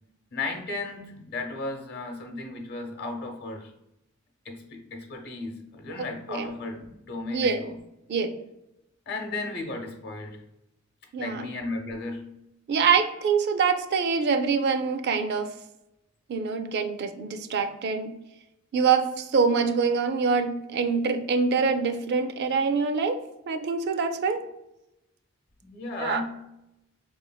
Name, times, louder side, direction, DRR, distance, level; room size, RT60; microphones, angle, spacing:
voice 1, 0.3-3.7 4.4-7.8 9.1-10.4 11.2-12.3 25.6-26.4, left 3 dB, 50° left, 3 dB, 0.8 m, -35 dB
voice 2, 11.1-11.4 12.7-15.5 16.3-18.1 18.7-24.4 26.0-26.2, right 5 dB, 55° right, 8 dB, 0.4 m, -25 dB
4.7 x 3.1 x 2.2 m, 0.89 s
head